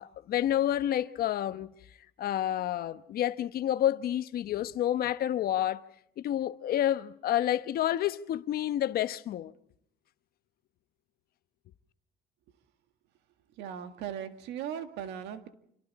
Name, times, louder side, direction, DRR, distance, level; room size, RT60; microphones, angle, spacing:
voice 1, 0.0-1.7 2.2-5.9 6.2-9.5, left 11 dB, 65° left, 1.0 m, -29 dB
voice 2, 13.6-15.5, right 9 dB, 90° right, 1.9 m, -38 dB
27.0 x 26.5 x 4.2 m
cardioid pair, 110°, 17 cm